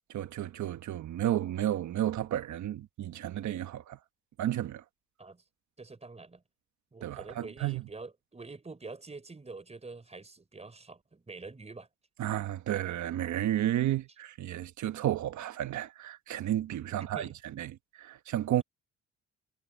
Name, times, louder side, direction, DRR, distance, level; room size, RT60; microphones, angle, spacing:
voice 1, 0.1-4.0 4.4-4.8 7.0-7.8 12.2-18.6, right 12 dB, 70° right, 1.3 m, -32 dB
voice 2, 5.8-6.4 6.9-11.9 17.0-17.3, right 3 dB, 20° right, 4.4 m, -46 dB
cardioid pair, 90°, 30 cm